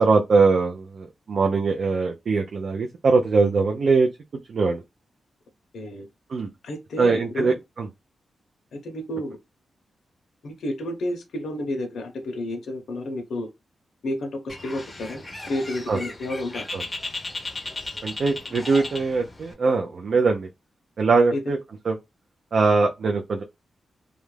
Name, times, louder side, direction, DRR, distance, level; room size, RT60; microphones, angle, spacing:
voice 1, 0.0-4.1 4.5-4.8 6.3-6.5 7.0-7.9 15.9-16.0 16.7-16.8 18.0-20.5 21.0-21.6 21.9-22.0 22.5-23.4, right 4 dB, 55° right, 0.3 m, -21 dB
voice 2, 5.7-6.1 6.6-7.6 8.7-9.4 10.4-13.5 14.0-16.7 21.3-21.4, left 1 dB, 75° left, 0.6 m, -31 dB
Bird, 14.5-19.5, left 2 dB, 20° left, 0.5 m, -36 dB
2.3 x 2.0 x 3.1 m
wide cardioid pair, 130°, 0 cm